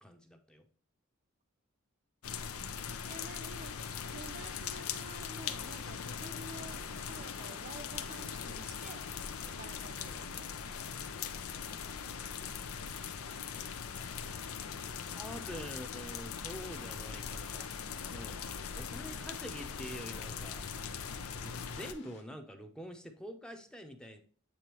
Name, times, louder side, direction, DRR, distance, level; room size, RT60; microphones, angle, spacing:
voice 1, 0.0-0.6 15.1-17.7 18.1-18.4 18.7-20.7 21.4-24.2, equal, 5° left, 0.7 m, -46 dB
sound 1, 2.2-21.9, left 6 dB, 90° left, 0.6 m, -41 dB
voice 2, 3.1-9.1 9.5-10.6, right 3 dB, 40° right, 0.6 m, -50 dB
sound 2, 6.2-22.2, left 3 dB, 55° left, 1.4 m, -58 dB
8.5 x 3.8 x 3.0 m
head